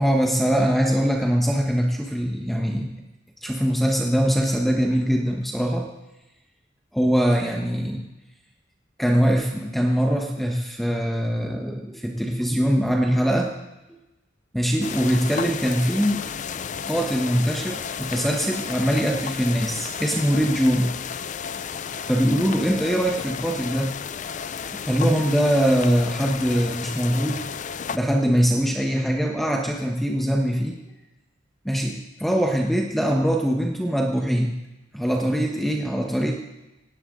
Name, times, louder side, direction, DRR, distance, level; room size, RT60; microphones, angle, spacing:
voice 1, 0.0-2.9 3.4-5.9 6.9-8.0 9.0-13.5 14.5-16.3 16.9-20.9 22.1-23.9 24.7-27.4 27.9-30.8 31.6-34.5 34.9-36.3, equal, ahead, 1 dB, 1.2 m, -22 dB
sound 1, 14.8-28.0, left 7 dB, 45° left, 0.5 m, -33 dB
18.5 x 17.0 x 3.9 m, 1.0 s
head